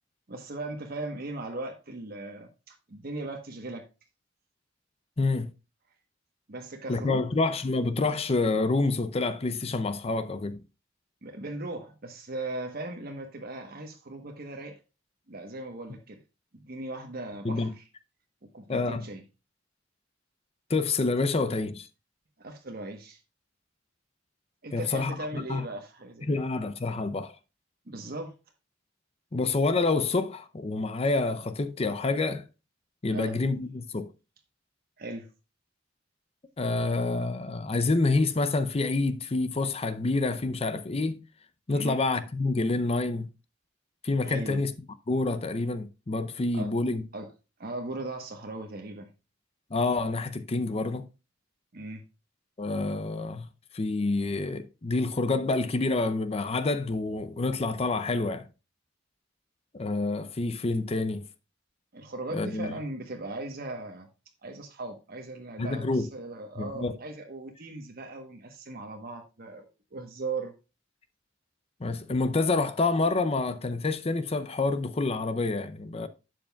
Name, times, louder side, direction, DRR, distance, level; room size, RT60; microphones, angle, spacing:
voice 1, 0.3-3.8 6.5-7.2 11.2-14.8 15.3-16.2 16.6-17.8 18.5-19.2 22.4-23.2 24.6-26.4 27.9-28.3 33.1-33.4 35.0-35.3 41.7-42.0 44.2-44.6 46.5-46.7 47.1-47.3 47.6-49.1 51.7-52.0 61.9-64.1 64.4-70.5, right 2 dB, 55° right, 1.1 m, -38 dB
voice 2, 5.2-5.5 6.9-10.6 17.4-17.7 18.7-19.1 20.7-21.9 24.7-25.7 26.3-27.3 29.3-32.4 33.0-34.1 36.6-41.2 41.7-43.3 44.0-44.7 45.1-47.0 49.7-51.1 52.6-53.5 53.7-58.5 59.7-61.3 62.3-62.7 65.6-66.1 66.6-67.0 71.8-76.1, left 3 dB, 30° left, 0.6 m, -27 dB
11.5 x 7.6 x 2.3 m
head